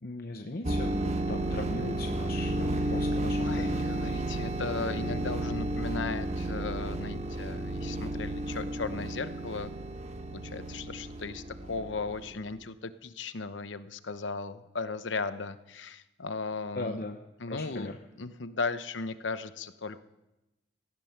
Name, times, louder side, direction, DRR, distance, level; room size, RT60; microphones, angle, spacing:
voice 1, 0.0-4.0 16.7-17.2 17.5-18.0, left 2 dB, 50° left, 4 dB, 0.8 m, -39 dB
sound 1, 0.6-12.3, right 1 dB, 35° right, 1.0 m, -32 dB
voice 2, 3.4-9.7 10.3-17.0 17.4-17.9 18.2-20.0, left 4 dB, 85° left, 12 dB, 0.9 m, -36 dB
17.0 x 14.5 x 5.9 m, 0.97 s
head